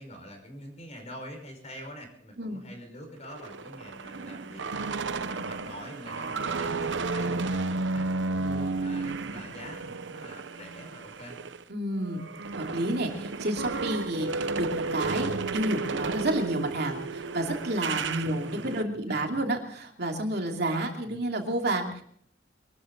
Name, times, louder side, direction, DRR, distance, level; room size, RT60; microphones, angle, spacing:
voice 1, 0.0-11.4 18.4-19.5 21.0-21.2, equal, 40° left, 4 dB, 5.2 m, -45 dB
sound 1, 3.2-11.6 12.0-18.8, right 3 dB, 85° right, 0.9 m, -33 dB
voice 2, 11.7-12.2 12.5-22.0, right 1 dB, 65° right, 2 dB, 2.8 m, -30 dB
23.5 x 13.5 x 3.9 m, 0.63 s
head